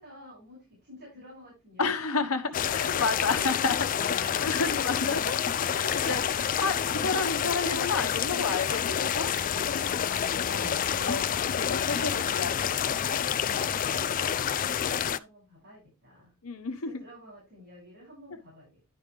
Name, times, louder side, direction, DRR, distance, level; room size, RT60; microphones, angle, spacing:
voice 1, 0.0-1.9 2.2-2.3 2.5-3.7 14.1-16.3 16.8-18.8, left 1 dB, 50° right, 6.3 m, -51 dB
voice 2, 1.8-9.3 10.5-11.2 11.5-12.7 16.4-17.0, left 4 dB, 70° left, 1.2 m, -31 dB
sound 1, 2.5-15.2, left 8 dB, 35° left, 0.4 m, -28 dB
11.5 x 5.0 x 3.4 m
head